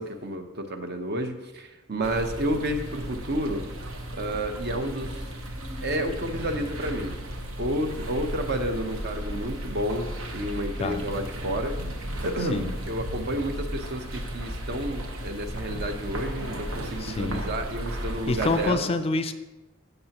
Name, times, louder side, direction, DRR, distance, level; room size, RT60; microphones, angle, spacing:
voice 1, 0.0-3.6 4.1-5.3 5.8-7.2 7.6-10.1 10.3-18.9, right 1 dB, 55° right, 6 dB, 0.9 m, -30 dB
sound 1, 2.0-18.7, equal, 85° right, 1.1 m, -35 dB
voice 2, 17.0-17.4 18.3-19.3, left 3 dB, 30° left, 11 dB, 0.4 m, -27 dB
14.5 x 6.7 x 2.9 m, 1.1 s
head